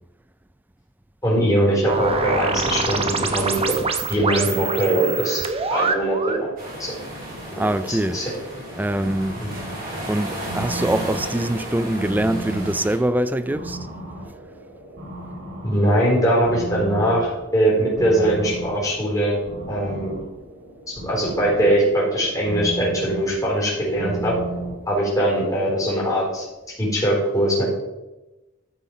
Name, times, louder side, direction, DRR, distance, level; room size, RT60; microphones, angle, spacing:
voice 1, 1.2-3.8 4.1-5.4 5.7-6.5 6.8-7.0 7.4-7.6 8.1-8.3 15.6-19.4 19.7-20.2 21.0-24.4 24.9-26.4 26.8-27.7, right 1 dB, 15° left, 4.1 m, -21 dB
sound 1, 1.9-6.5, right 4 dB, 30° right, 0.8 m, -25 dB
sound 2, 6.6-13.0, right 1 dB, 45° right, 3.9 m, -34 dB
voice 2, 7.6-8.2 8.8-9.4 10.1-13.9, right 1 dB, 10° right, 0.4 m, -23 dB
sound 3, 8.5-24.8, right 2 dB, 65° right, 4.1 m, -35 dB
12.0 x 6.0 x 5.1 m
head